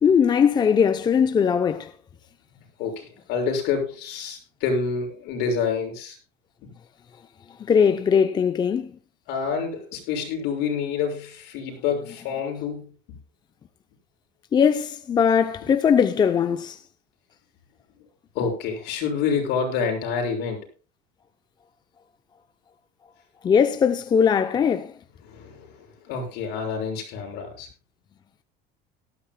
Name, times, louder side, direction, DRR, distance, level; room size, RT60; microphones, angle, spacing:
voice 1, 0.0-1.9 7.6-8.9 14.5-16.8 23.4-24.9, left 7 dB, 25° left, 0.6 m, -20 dB
voice 2, 2.8-6.2 6.6-6.7 9.3-13.2 18.3-20.7 25.2-27.7, left 5 dB, 70° left, 6.3 m, -28 dB
18.5 x 13.5 x 2.3 m
cardioid pair, 165°, 19 cm